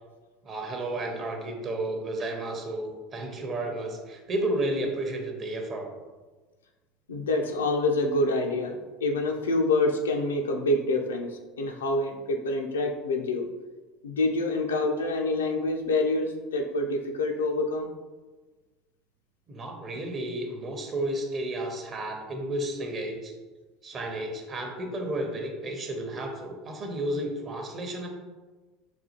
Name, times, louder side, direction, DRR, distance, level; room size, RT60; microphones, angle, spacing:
voice 1, 0.4-5.9 19.5-23.3 23.8-28.1, right 1 dB, 35° right, 3 dB, 0.7 m, -32 dB
voice 2, 7.1-13.5 14.0-17.9, left 2 dB, 80° left, 3 dB, 0.4 m, -27 dB
4.1 x 2.3 x 2.8 m, 1.3 s
hypercardioid pair, 75°, 0 cm